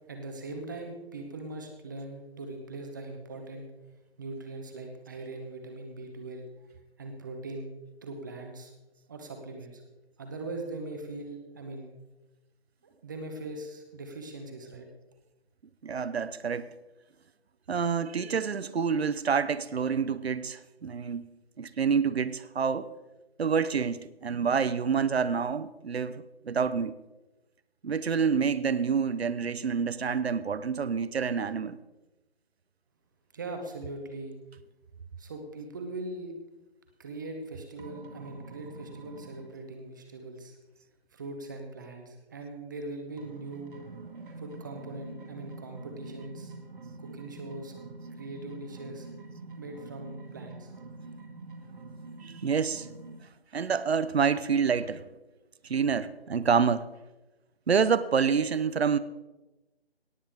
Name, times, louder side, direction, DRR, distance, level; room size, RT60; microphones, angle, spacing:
voice 1, 0.1-3.7 4.2-6.5 7.0-7.7 8.0-8.7 9.1-9.8 10.2-11.9 13.0-14.9 33.3-34.3 35.2-36.3 37.0-40.6 41.1-43.8 44.4-46.5 47.0-47.7 48.2-49.1 49.5-50.7, right 2 dB, 20° right, 1.0 m, -40 dB
voice 2, 15.8-16.7 17.7-21.3 21.6-22.9 23.4-27.0 27.8-31.8 52.2-52.9 53.5-55.0 55.6-56.8 57.7-59.0, right 6 dB, 75° right, 0.8 m, -27 dB
sound 1, 37.8-39.6 43.2-53.2, right 3 dB, 55° right, 1.9 m, -46 dB
18.0 x 8.3 x 3.6 m
figure-of-eight pair, 165°, 32 cm